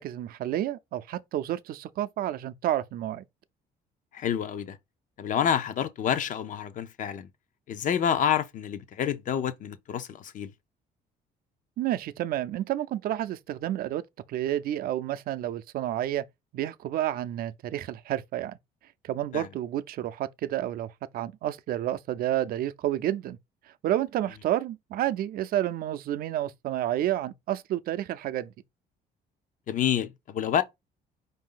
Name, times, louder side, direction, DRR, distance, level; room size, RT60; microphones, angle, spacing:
voice 1, 0.0-3.2 11.8-14.0 14.3-16.2 16.5-18.6 19.0-23.4 23.8-28.5, right 12 dB, 60° right, 0.5 m, -30 dB
voice 2, 4.1-4.8 5.2-7.3 7.7-10.5 19.3-19.5 29.7-30.6, left 9 dB, 50° left, 0.6 m, -28 dB
4.9 x 2.7 x 3.7 m
cardioid pair, 110°, 17 cm